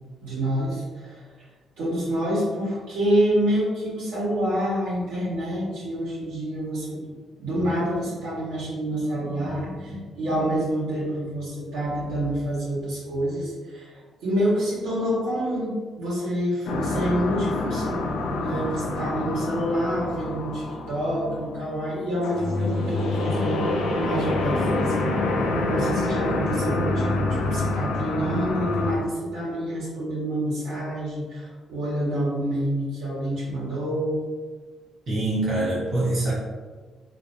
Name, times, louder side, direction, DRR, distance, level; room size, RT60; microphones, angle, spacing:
voice 1, 0.2-1.2 1.8-7.0 7.3-18.1 18.4-25.1 25.7-34.2, equal, 90° right, -8 dB, 1.4 m, -27 dB
sound 1, 16.7-29.0, left 2 dB, 85° left, 0.5 m, -26 dB
voice 2, 35.1-36.3, right 2 dB, 55° right, -7 dB, 1.1 m, -24 dB
3.3 x 2.8 x 2.6 m, 1.4 s
cardioid pair, 90°, 0 cm